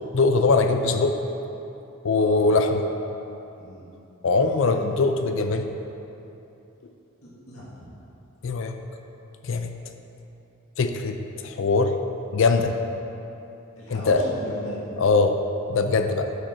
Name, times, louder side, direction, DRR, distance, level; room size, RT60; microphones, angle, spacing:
voice 1, 0.1-1.2 2.0-2.8 4.2-5.7 8.4-8.7 9.4-9.7 10.8-12.0 12.3-12.7 13.9-14.2 15.0-15.4 15.7-16.3, left 3 dB, 60° left, 7 dB, 0.4 m, -21 dB
voice 2, 2.1-2.5 3.6-3.8 4.7-4.8 7.5-7.9 13.8-14.8, equal, 75° left, -7 dB, 1.9 m, -37 dB
11.0 x 5.1 x 4.3 m, 2.9 s
head